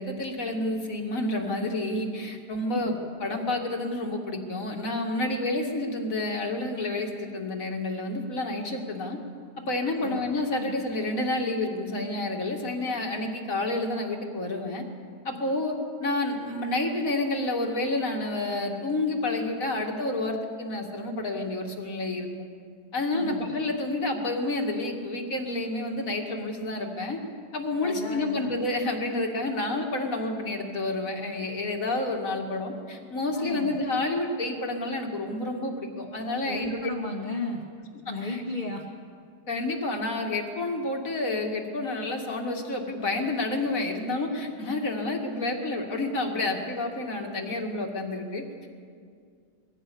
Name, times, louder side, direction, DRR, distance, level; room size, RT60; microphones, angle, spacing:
voice 1, 0.0-9.2 9.6-14.8 15.2-22.5 22.9-27.2 27.5-36.9 38.2-38.4 39.5-48.7, left 2 dB, 50° left, 2 dB, 2.7 m, -29 dB
voice 2, 10.0-10.3 10.6-10.8 23.1-23.5 27.8-28.5 33.3-33.8 36.5-37.6 38.1-38.8, left 2 dB, 25° left, -4 dB, 2.0 m, -34 dB
22.0 x 16.5 x 8.6 m, 2.2 s
omnidirectional pair, 1.9 m